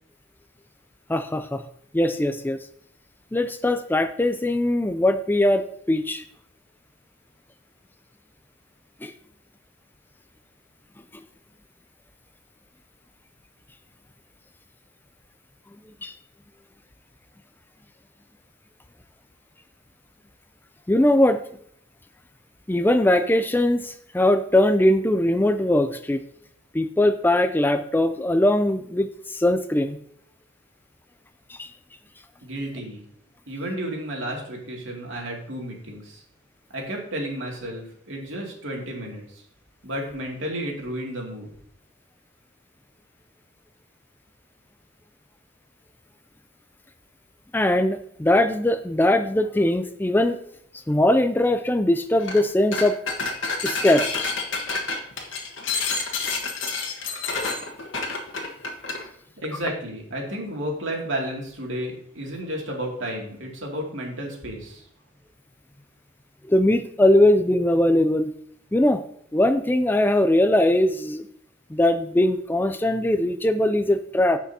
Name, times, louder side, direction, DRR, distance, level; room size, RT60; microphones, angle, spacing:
voice 1, 1.1-1.6 1.9-2.6 3.3-6.2 9.0-9.1 16.0-16.1 20.9-21.4 22.7-26.2 26.7-29.1 29.3-30.0 31.6-31.7 47.5-50.4 50.9-53.0 53.6-54.0 66.5-68.3 68.7-69.0 69.3-71.3 71.7-74.4, left 1 dB, 10° left, 10 dB, 0.4 m, -20 dB
voice 2, 32.4-33.0 33.5-36.2 36.7-39.4 39.8-41.5 59.4-64.9, right 1 dB, 85° right, 0 dB, 2.4 m, -32 dB
sound 1, 52.2-52.4 52.7-59.0, left 4 dB, 80° left, 1.5 m, -28 dB
15.5 x 5.8 x 2.8 m, 0.65 s
head